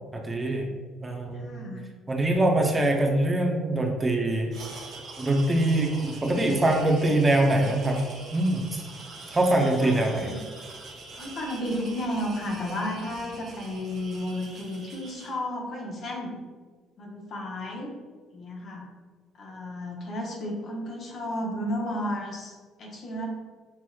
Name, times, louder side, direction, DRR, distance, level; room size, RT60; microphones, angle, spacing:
voice 1, 0.1-0.7 1.0-1.6 2.1-4.5 5.2-8.0 8.3-8.9 9.3-10.3, right 1 dB, 25° right, 1 dB, 0.7 m, -23 dB
voice 2, 1.3-1.8 9.8-10.4 11.1-16.3 17.0-17.9 18.3-18.8 19.4-23.3, left 1 dB, 55° left, -1 dB, 1.0 m, -33 dB
sound 1, 4.5-15.3, right 3 dB, 55° right, 1.1 m, -44 dB
5.8 x 3.0 x 2.3 m, 1.5 s
supercardioid pair, 70°, 0 cm